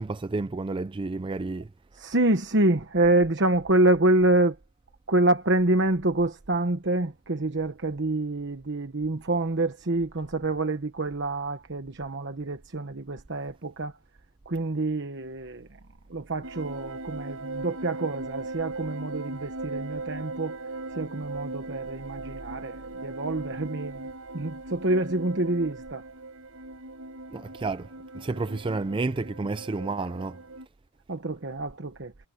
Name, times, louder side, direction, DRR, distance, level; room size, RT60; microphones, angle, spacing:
voice 1, 0.0-1.7 27.3-27.9 28.1-30.4, right 3 dB, 25° right, 0.4 m, -30 dB
voice 2, 2.0-4.6 5.1-13.9 14.5-15.7 16.1-20.6 20.9-24.1 24.3-26.0 31.1-32.1, right 2 dB, 55° right, 1.2 m, -26 dB
sound 1, 16.4-30.6, right 2 dB, 85° right, 4.6 m, -39 dB
head